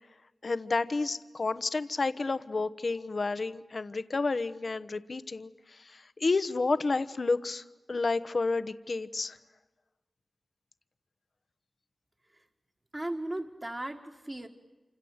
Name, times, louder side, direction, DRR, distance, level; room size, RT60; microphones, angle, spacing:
voice 1, 0.4-9.4, left 3 dB, 55° left, 14 dB, 1.1 m, -30 dB
voice 2, 12.9-14.5, right 1 dB, 25° right, 0 dB, 2.0 m, -36 dB
28.0 x 26.0 x 8.1 m, 1.2 s
wide cardioid pair, 75°, 0 cm